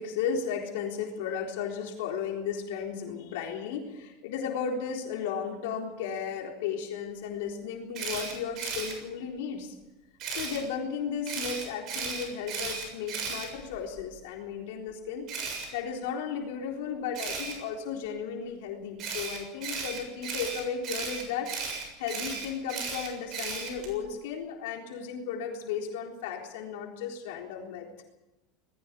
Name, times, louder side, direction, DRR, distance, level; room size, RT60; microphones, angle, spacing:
voice 1, 0.0-9.7 10.3-15.3 15.7-21.5 22.0-27.9, left 7 dB, 80° left, 1 dB, 3.8 m, -34 dB
Camera, 7.9-8.9 10.2-10.6 11.3-14.0 15.3-15.7 17.1-17.5 19.0-23.9, right 5 dB, 40° right, 7.1 m, -35 dB
20.0 x 16.0 x 8.3 m, 1.0 s
supercardioid pair, 155°, 0 cm